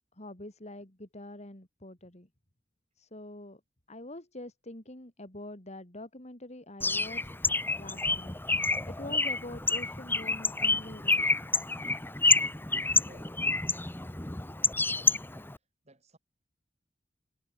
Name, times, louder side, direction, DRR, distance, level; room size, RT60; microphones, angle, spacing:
voice 1, 0.2-2.3 3.0-3.6 3.9-7.3 7.8-8.3 8.9-11.3, left 1 dB, 40° left, 3.8 m, -45 dB
Bird, 6.8-15.6, left 3 dB, 10° left, 1.2 m, -29 dB
voice 2, 13.1-13.4 14.8-15.3 15.8-16.2, right 1 dB, 35° right, 5.6 m, -56 dB
head